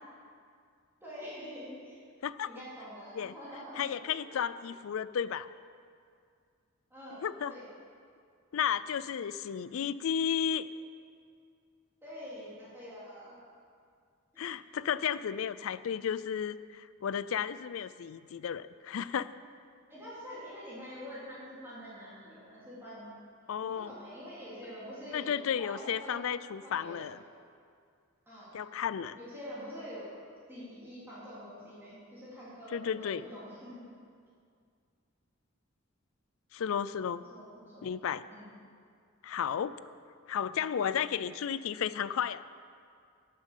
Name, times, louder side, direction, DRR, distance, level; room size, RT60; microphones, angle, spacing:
voice 1, 1.0-2.0 2.5-3.9 4.3-4.4 6.9-7.7 12.0-13.4 14.3-14.5 19.9-23.1 23.6-26.1 26.6-27.2 28.3-28.6 29.1-30.1 30.5-33.9 37.3-37.9 38.3-38.5, equal, 10° right, -10 dB, 3.2 m, -46 dB
voice 2, 3.8-5.5 7.2-7.5 8.5-10.7 14.4-19.3 23.5-23.9 25.1-27.2 28.5-29.2 32.7-33.2 36.5-37.2 37.8-38.2 39.2-39.7 40.3-42.4, left 8 dB, 70° left, 16 dB, 0.4 m, -33 dB
11.5 x 7.7 x 7.3 m, 2.2 s
head